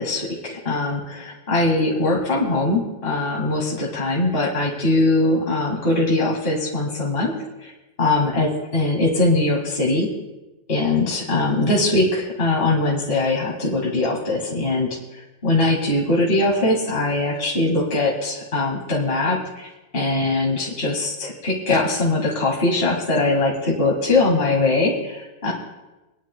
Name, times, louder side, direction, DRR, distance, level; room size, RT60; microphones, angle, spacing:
voice 1, 0.0-7.4 7.6-7.7 8.0-10.1 10.7-14.9 15.4-19.7 19.9-25.5, left 2 dB, 30° left, -3 dB, 2.0 m, -21 dB
28.5 x 10.0 x 2.2 m, 1.0 s
omnidirectional pair, 2.2 m